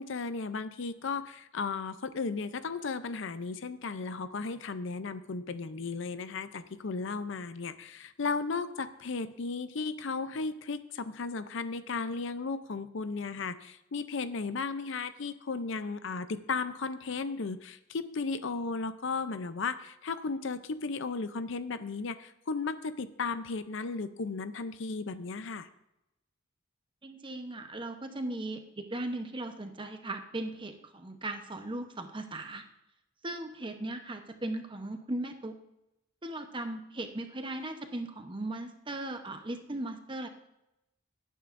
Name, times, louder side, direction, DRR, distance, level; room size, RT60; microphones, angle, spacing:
voice 1, 0.0-25.7, left 4 dB, 65° left, 12 dB, 0.6 m, -35 dB
voice 2, 27.0-32.6 33.2-35.6 36.2-40.3, right 1 dB, 25° right, 6 dB, 0.9 m, -38 dB
18.0 x 9.2 x 2.6 m, 0.88 s
head